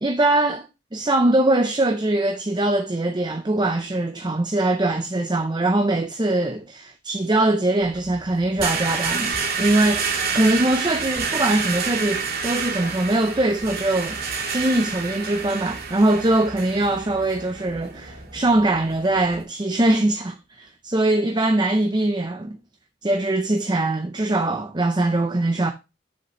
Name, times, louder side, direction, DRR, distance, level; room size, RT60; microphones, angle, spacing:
voice 1, 0.0-0.7 0.9-14.2 14.5-22.6 23.0-25.7, right 2 dB, 25° right, 0.6 m, -22 dB
sound 1, 7.8-19.4, right 5 dB, 55° right, 3.1 m, -29 dB
7.4 x 6.9 x 3.1 m
head